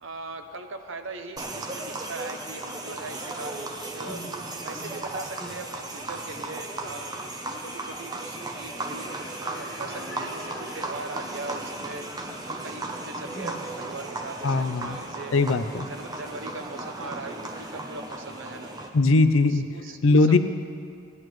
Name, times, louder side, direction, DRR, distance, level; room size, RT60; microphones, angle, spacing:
voice 1, 0.0-4.2 4.6-7.1 7.6-12.1 12.5-15.3 15.9-18.7 19.5-20.4, right 3 dB, 65° right, 6 dB, 0.7 m, -40 dB
sound 1, 1.4-18.9, right 2 dB, 20° right, 0.7 m, -36 dB
sound 2, 3.0-16.7, equal, 5° left, 1.7 m, -47 dB
voice 2, 14.4-15.0 15.3-15.9 18.9-19.6 20.0-20.4, left 3 dB, 70° left, 10 dB, 0.5 m, -20 dB
16.5 x 11.0 x 3.1 m, 2.2 s
head